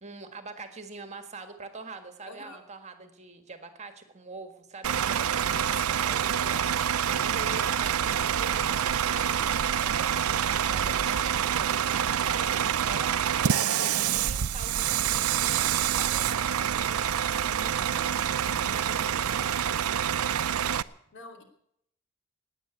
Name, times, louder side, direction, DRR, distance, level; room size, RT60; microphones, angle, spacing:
voice 1, 0.0-6.5 7.2-13.1 13.6-18.4 18.6-19.5, right 3 dB, 35° right, 7 dB, 1.6 m, -44 dB
voice 2, 2.3-2.6 5.5-6.8 13.7-13.9 18.6-18.8 21.1-21.4, left 2 dB, 60° left, 3 dB, 2.9 m, -46 dB
Bus / Idling, 4.8-20.8, right 9 dB, 85° right, 0.5 m, -27 dB
17.5 x 9.5 x 8.2 m, 0.72 s
head